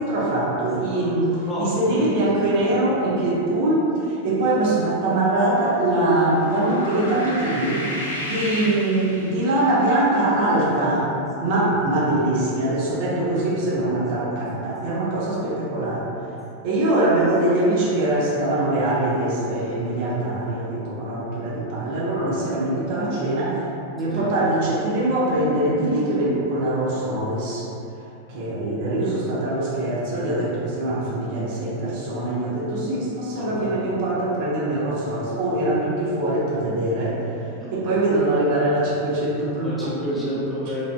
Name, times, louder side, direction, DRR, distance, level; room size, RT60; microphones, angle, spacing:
voice 1, 0.0-7.9 8.2-11.1 11.4-16.1 16.6-23.6 23.9-27.6 28.3-37.2 37.7-39.7, right 1 dB, 45° right, -7 dB, 0.5 m, -23 dB
voice 2, 1.5-2.2 15.4-15.6 24.1-24.3 33.4-33.7 37.6-37.7 39.6-40.9, equal, 5° left, -10 dB, 0.8 m, -30 dB
sound 1, 6.0-9.7, left 1 dB, 70° left, 0.4 m, -32 dB
3.2 x 2.4 x 2.2 m, 2.8 s
figure-of-eight pair, 90°, 0 cm